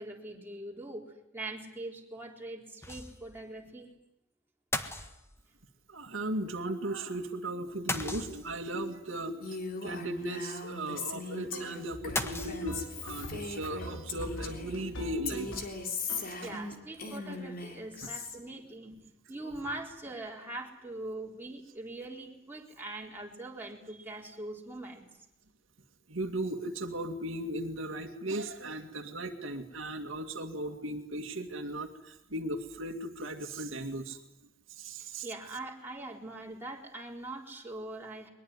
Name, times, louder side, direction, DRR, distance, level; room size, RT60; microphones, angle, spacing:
voice 1, 0.0-3.9 16.4-19.0 19.3-25.0 35.0-38.3, right 2 dB, 10° right, -1 dB, 4.1 m, -42 dB
sound 1, 2.8-3.4 3.7-3.8 4.7-5.6 7.9-8.7 12.1-13.1, left 2 dB, 15° left, 1.5 m, -36 dB
voice 2, 5.9-15.5 16.2-16.3 26.1-34.2 34.7-35.3, right 1 dB, 70° right, 4 dB, 2.2 m, -37 dB
Female speech woman speaking, 9.4-14.8 15.2-18.4, left 4 dB, 50° left, 3.5 m, -39 dB
sound 2, 11.5-15.8 16.1-16.6, equal, 80° left, 5.4 m, -43 dB
22.5 x 21.5 x 9.8 m, 0.86 s
head